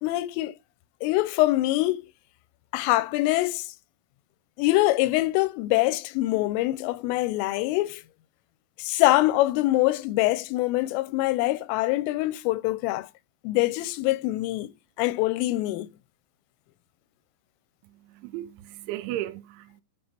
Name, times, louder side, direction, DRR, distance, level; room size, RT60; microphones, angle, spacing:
voice 1, 0.0-0.5 1.0-2.0 2.7-3.7 4.6-8.0 8.8-13.1 13.4-14.7 15.0-15.9, left 18 dB, 90° left, 3.2 m, -24 dB
voice 2, 17.8-19.8, right 14 dB, 85° right, 2.8 m, -36 dB
9.7 x 5.1 x 4.4 m
omnidirectional pair, 5.6 m